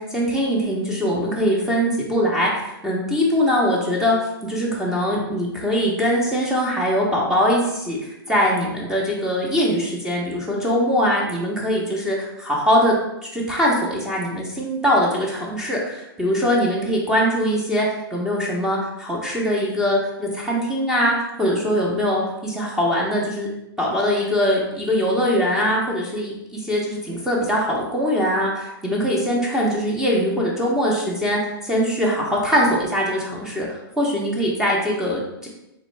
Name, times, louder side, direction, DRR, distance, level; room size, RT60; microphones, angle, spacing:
voice 1, 0.0-4.2 4.4-13.0 13.3-23.5 23.8-35.5, equal, 5° right, -3 dB, 0.8 m, -22 dB
3.9 x 3.1 x 3.3 m, 0.87 s
hypercardioid pair, 140°, 13 cm